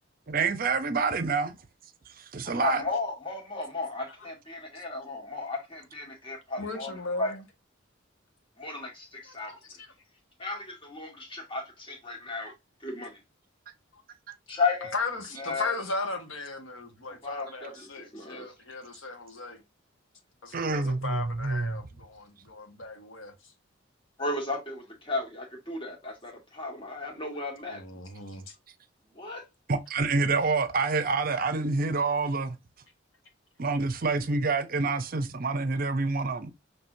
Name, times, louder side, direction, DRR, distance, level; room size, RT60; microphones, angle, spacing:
voice 1, 0.3-1.6 2.2-2.8 20.5-21.8 29.7-32.6 33.6-36.5, right 3 dB, 50° right, 0.6 m, -27 dB
voice 2, 2.4-6.9 7.2-7.3 8.6-9.6 10.4-12.5 12.8-13.2 14.5-14.9 15.4-15.8 17.2-18.4 24.2-27.8 29.1-29.4, left 3 dB, 25° left, 1.6 m, -34 dB
voice 3, 6.6-7.4 9.2-9.9 13.9-14.0 14.9-19.6 20.4-23.5 27.7-28.5, left 3 dB, 85° left, 1.5 m, -37 dB
6.0 x 3.3 x 2.6 m
head